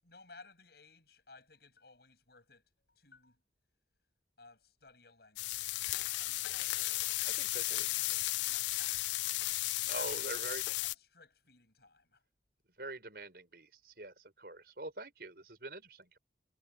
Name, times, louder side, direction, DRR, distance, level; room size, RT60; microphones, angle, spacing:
voice 1, 0.0-3.4 4.4-10.3 10.8-12.2, left 3 dB, 60° left, 7.7 m, -60 dB
sound 1, 5.4-10.9, left 19 dB, 80° left, 0.3 m, -34 dB
voice 2, 7.2-7.9 9.9-10.7 12.8-16.2, right 2 dB, 55° right, 6.0 m, -44 dB
head